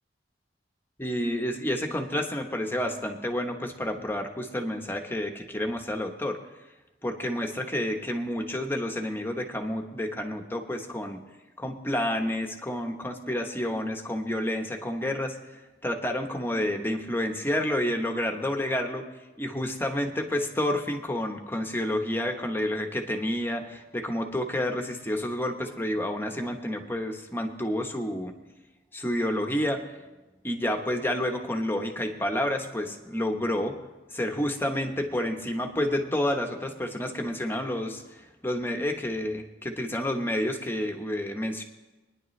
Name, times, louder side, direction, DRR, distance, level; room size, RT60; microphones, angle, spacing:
voice 1, 1.0-6.4 7.0-11.2 11.6-15.3 15.8-19.1 19.4-28.3 28.9-29.8 30.4-33.8 34.1-38.0 38.4-41.6, left 1 dB, 15° left, 4 dB, 1.1 m, -29 dB
24.0 x 10.0 x 3.2 m, 1.1 s
head